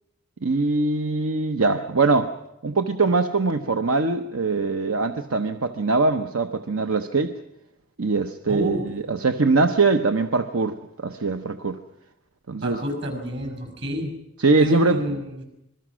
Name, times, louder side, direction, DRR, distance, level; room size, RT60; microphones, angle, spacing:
voice 1, 0.4-2.3 2.6-7.4 8.0-11.8 12.5-12.8 14.4-15.0, right 3 dB, 80° right, 8 dB, 0.9 m, -22 dB
voice 2, 8.5-8.9 12.6-14.1 14.6-15.4, equal, 55° right, 6 dB, 6.3 m, -29 dB
26.5 x 21.5 x 6.3 m, 0.88 s
head